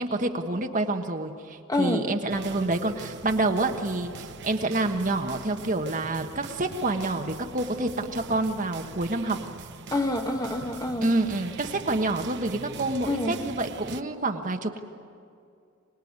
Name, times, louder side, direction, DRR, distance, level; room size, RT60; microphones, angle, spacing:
voice 1, 0.0-9.4 11.0-14.8, right 2 dB, 40° right, 5 dB, 1.3 m, -28 dB
voice 2, 1.7-2.1 9.9-11.1 13.0-13.4, left 1 dB, 20° left, 4 dB, 1.4 m, -27 dB
sound 1, 2.3-14.0, right 4 dB, 55° right, 0.9 m, -43 dB
25.5 x 20.5 x 9.6 m, 2.4 s
head